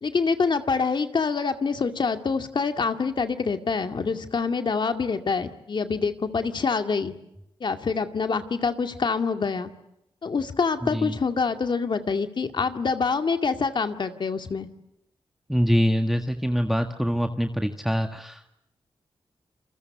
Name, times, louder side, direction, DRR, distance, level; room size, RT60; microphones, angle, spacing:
voice 1, 0.0-7.1 7.6-9.7 10.2-14.7, left 5 dB, 55° left, 7 dB, 2.2 m, -26 dB
voice 2, 15.5-18.6, equal, ahead, 6 dB, 1.7 m, -24 dB
28.0 x 22.5 x 8.1 m, 0.82 s
cardioid pair, 70°, 9 cm